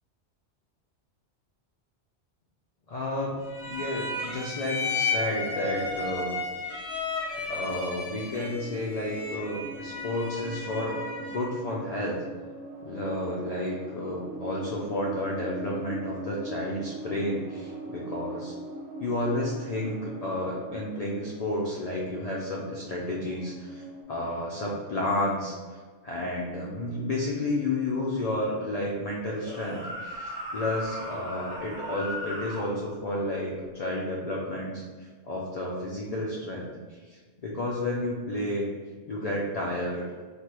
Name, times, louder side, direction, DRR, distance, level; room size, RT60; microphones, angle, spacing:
voice 1, 2.9-3.4 3.7-7.0 7.3-12.2 12.8-18.5 19.0-25.5 26.0-34.8 35.2-37.0 37.4-38.7 39.1-40.0, left 1 dB, 70° left, -4 dB, 0.3 m, -31 dB
sound 1, 3.5-11.6, left 3 dB, 35° left, 0.7 m, -33 dB
sound 2, 5.7-7.6 8.0-24.0, right 1 dB, 80° right, 0.9 m, -42 dB
sound 3, 29.3-32.7, equal, 60° right, 1.2 m, -37 dB
3.4 x 2.2 x 2.9 m, 1.5 s
omnidirectional pair, 1.2 m